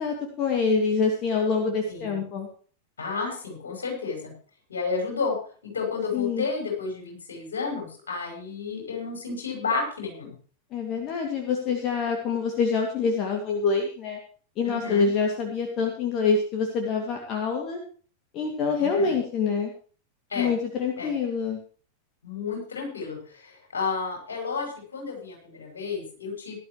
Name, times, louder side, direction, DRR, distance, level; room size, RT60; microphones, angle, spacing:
voice 1, 0.0-2.5 6.1-6.5 10.7-14.2 14.6-17.8 18.3-19.7 20.4-21.6, left 5 dB, 35° left, 2 dB, 2.5 m, -26 dB
voice 2, 1.9-2.2 3.0-4.3 4.7-5.4 5.6-10.3 14.6-15.1 18.8-19.1 20.3-20.5 21.0-21.1 22.2-26.5, left 4 dB, 70° left, 1 dB, 6.5 m, -31 dB
18.5 x 12.0 x 3.2 m, 0.41 s
figure-of-eight pair, 90°, 0 cm